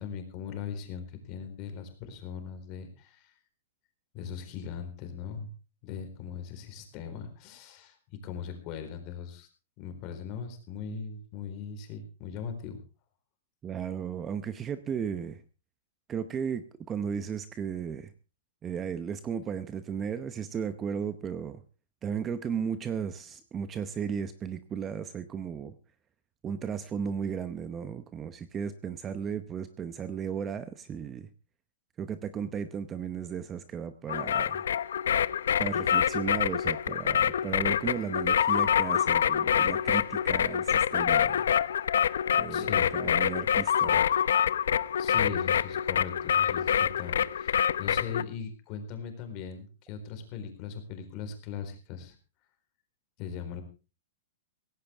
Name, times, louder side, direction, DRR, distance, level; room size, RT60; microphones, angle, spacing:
voice 1, 0.0-3.3 4.1-5.5 5.8-9.5 9.8-12.8 42.5-42.9 45.0-52.2 53.2-53.6, left 7 dB, 30° left, 7 dB, 4.2 m, -39 dB
voice 2, 13.6-15.4 16.1-18.1 18.6-21.6 22.0-25.7 26.4-31.3 32.0-34.7 35.6-41.5 42.4-44.1, right 7 dB, 15° right, 12 dB, 0.8 m, -35 dB
sound 1, 34.1-48.2, left 8 dB, 85° left, 0.8 m, -26 dB
17.0 x 16.0 x 3.5 m, 0.33 s
hypercardioid pair, 160°, 0 cm